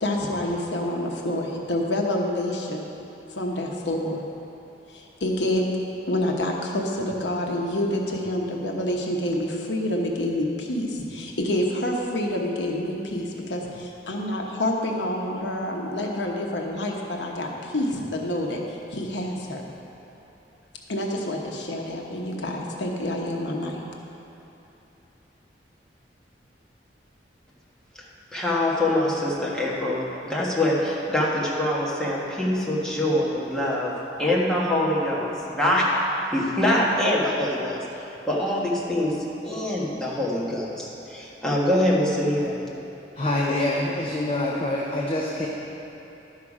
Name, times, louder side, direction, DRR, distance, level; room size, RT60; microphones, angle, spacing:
voice 1, 0.0-2.9 3.3-4.2 4.9-5.6 6.1-19.7 20.9-23.8, left 1 dB, 80° left, 0 dB, 1.0 m, -27 dB
voice 2, 28.3-33.9 34.2-37.8 38.3-42.6, left 1 dB, 5° left, -6 dB, 1.3 m, -24 dB
voice 3, 43.2-45.5, left 1 dB, 30° left, -3 dB, 0.7 m, -25 dB
11.5 x 5.8 x 4.9 m, 3.0 s
head